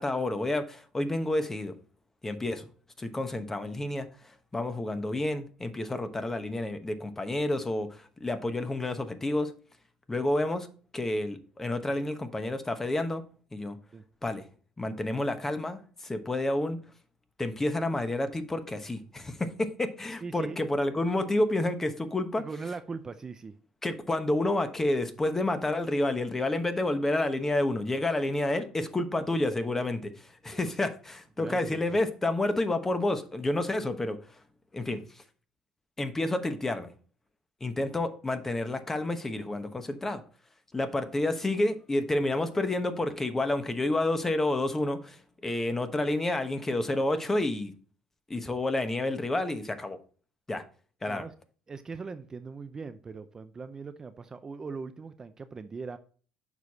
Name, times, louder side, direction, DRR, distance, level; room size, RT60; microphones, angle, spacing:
voice 1, 0.0-1.7 2.2-2.7 3.0-4.1 4.5-9.5 10.1-10.7 10.9-13.2 13.5-13.8 14.2-14.4 14.8-16.8 17.4-22.4 23.8-34.2 34.7-35.0 36.0-36.9 37.6-40.2 40.7-47.7 48.3-50.0 50.5-50.6 51.0-51.2, left 2 dB, 20° left, 9 dB, 1.0 m, -29 dB
voice 2, 20.2-20.6 22.4-23.6 31.4-32.0 51.0-51.3 51.7-56.0, right 4 dB, 30° right, 10 dB, 0.5 m, -40 dB
6.7 x 4.8 x 4.1 m, 0.41 s
supercardioid pair, 85°, 2 cm